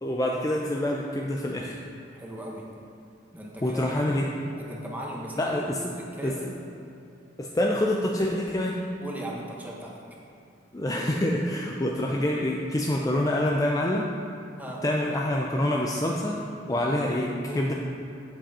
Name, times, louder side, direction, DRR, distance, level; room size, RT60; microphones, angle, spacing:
voice 1, 0.0-1.8 3.6-4.3 5.4-5.8 6.2-6.4 7.4-8.8 10.7-14.1 14.8-16.4 16.7-17.7, left 1 dB, 20° left, -1 dB, 0.5 m, -26 dB
voice 2, 2.1-2.6 3.3-4.3 4.6-5.6 6.1-6.4 9.0-10.0 14.6-14.8 17.1-17.6, right 1 dB, 10° right, -3 dB, 1.2 m, -37 dB
7.8 x 7.6 x 4.2 m, 2.6 s
head